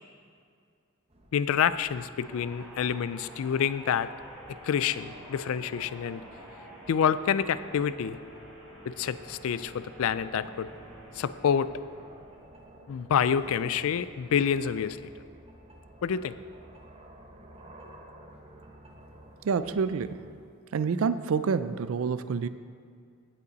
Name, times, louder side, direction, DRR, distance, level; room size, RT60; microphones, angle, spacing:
sound 1, 1.1-20.5, right 1 dB, 25° right, 0.8 m, -53 dB
voice 1, 1.3-4.1 4.6-6.2 6.9-8.2 8.9-10.7 11.2-11.7 12.9-15.1 16.0-16.4, left 8 dB, 70° left, 15 dB, 0.3 m, -27 dB
sound 2, 2.2-12.5, equal, 5° right, 2.1 m, -48 dB
voice 2, 19.4-20.2 20.7-22.5, right 5 dB, 65° right, 13 dB, 0.4 m, -27 dB
16.0 x 5.6 x 4.0 m, 2.2 s
head